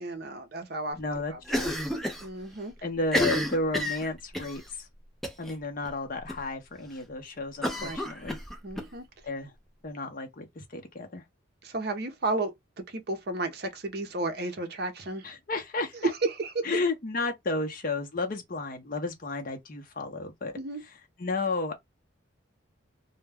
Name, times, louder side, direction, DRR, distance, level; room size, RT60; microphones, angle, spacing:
voice 1, 0.0-1.7 2.2-2.7 7.8-8.0 8.6-9.1 11.6-15.3 16.0-16.6 20.5-20.8, right 2 dB, 50° right, 0.6 m, -33 dB
voice 2, 1.0-1.8 2.8-4.9 5.4-8.4 9.2-9.5 9.8-11.2 15.2-16.1 16.6-20.5 21.2-21.7, left 3 dB, 45° left, 0.6 m, -32 dB
Cough, 1.5-2.3 2.5-2.6 3.0-4.6 5.2-5.5 5.8-5.9 6.3-6.4 7.6-8.9, equal, ahead, 0.4 m, -30 dB
2.2 x 2.1 x 3.3 m
head